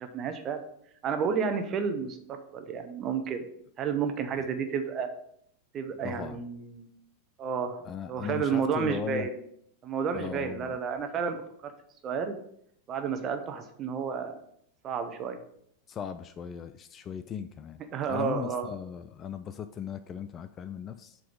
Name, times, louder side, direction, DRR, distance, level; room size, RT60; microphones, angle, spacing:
voice 1, 0.1-0.6 1.0-3.5 3.8-5.1 5.7-6.9 7.4-7.8 8.1-9.3 9.8-11.4 11.6-11.7 12.0-12.4 12.9-14.4 14.8-15.4 17.9-18.7, right 6 dB, 30° right, 6 dB, 1.0 m, -31 dB
voice 2, 6.0-6.4 7.8-9.3 10.1-10.8 15.9-17.8 18.1-21.2, left 8 dB, 25° left, 11 dB, 0.4 m, -38 dB
7.6 x 3.9 x 5.2 m, 0.69 s
figure-of-eight pair, 90°, 0 cm